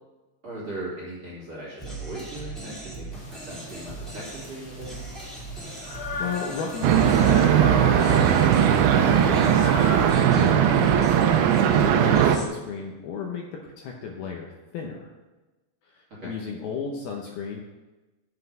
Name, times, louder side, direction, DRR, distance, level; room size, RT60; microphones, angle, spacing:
voice 1, 0.4-5.0 16.2-16.3, right 1 dB, 35° right, -7 dB, 2.4 m, -38 dB
sound 1, 1.8-12.4, right 1 dB, ahead, 1.2 m, -39 dB
sound 2, 3.1-10.1, left 3 dB, 50° left, 1.8 m, -37 dB
voice 2, 5.8-8.5 9.0-9.5 10.0-11.2 11.5-15.1 15.8-17.6, left 5 dB, 75° left, 0 dB, 2.4 m, -34 dB
sound 3, 6.8-12.4, right 9 dB, 85° right, 2.2 m, -19 dB
7.9 x 5.7 x 7.8 m, 1.1 s
omnidirectional pair, 5.2 m